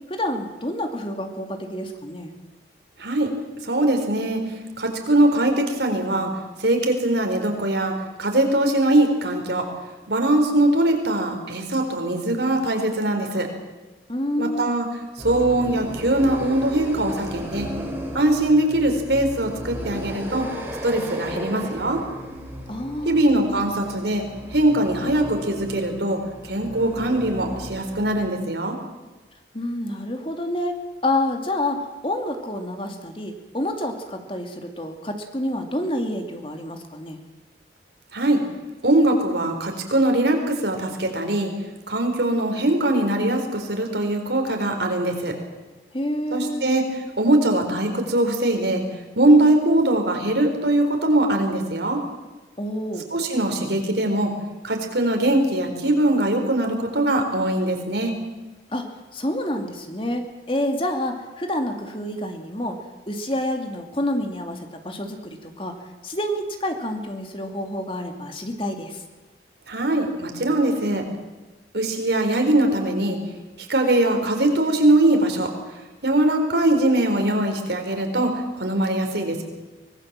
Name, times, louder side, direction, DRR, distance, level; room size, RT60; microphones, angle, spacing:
voice 1, 0.1-2.3 14.1-14.7 22.7-23.3 29.5-30.8 31.0-37.2 45.9-46.6 52.6-53.1 58.7-58.9 59.1-62.8 63.1-69.0, left 1 dB, 30° left, 5 dB, 2.4 m, -28 dB
voice 2, 3.0-3.3 3.6-4.4 4.8-6.3 6.6-9.7 10.1-13.5 14.4-14.9 15.2-17.7 18.1-20.5 20.8-22.0 23.1-24.2 24.5-28.8 38.1-38.4 38.8-41.5 41.9-45.3 46.3-46.9 47.2-48.8 49.2-52.0 53.1-54.3 54.6-58.2 69.7-71.0 71.7-73.2 73.7-75.5 76.0-78.3 78.6-79.4, right 1 dB, 75° right, 4 dB, 4.3 m, -21 dB
sound 1, 15.2-28.3, equal, 10° right, 4.0 m, -35 dB
24.0 x 19.0 x 7.5 m, 1.2 s
head